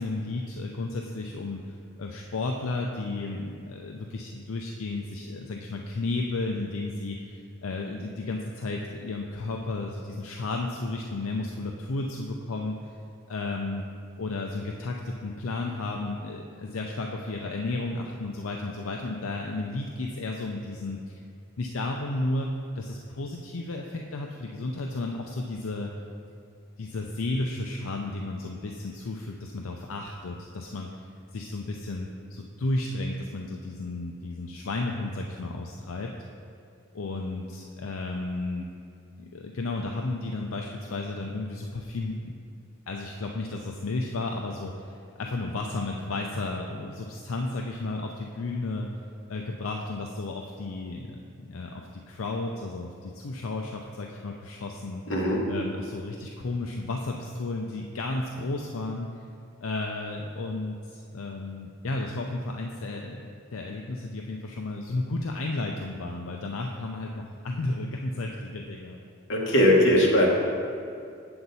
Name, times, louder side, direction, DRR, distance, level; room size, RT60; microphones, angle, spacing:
voice 1, 0.0-12.8 13.3-13.8 14.2-21.2 21.6-25.9 26.8-30.9 31.3-36.2 36.9-38.7 39.2-42.3 42.9-48.9 49.3-55.0 55.5-59.1 59.6-69.0, left 2 dB, 85° left, 1 dB, 0.5 m, -33 dB
voice 2, 55.1-55.5 69.3-70.3, left 1 dB, 65° left, -2 dB, 1.5 m, -20 dB
7.8 x 7.7 x 4.1 m, 2.4 s
head